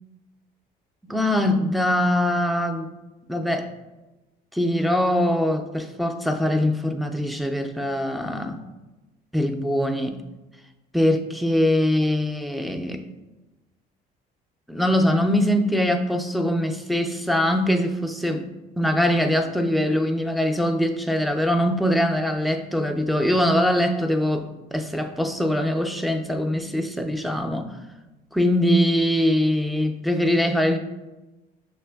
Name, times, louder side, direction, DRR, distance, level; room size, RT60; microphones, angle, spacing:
voice 1, 1.0-2.9 3.3-3.7 4.5-8.6 9.3-10.2 10.9-13.0 14.7-18.5 18.8-27.7 28.3-30.8, left 1 dB, ahead, 4 dB, 0.3 m, -22 dB
5.9 x 3.3 x 2.2 m, 1.1 s
cardioid pair, 110°, 17 cm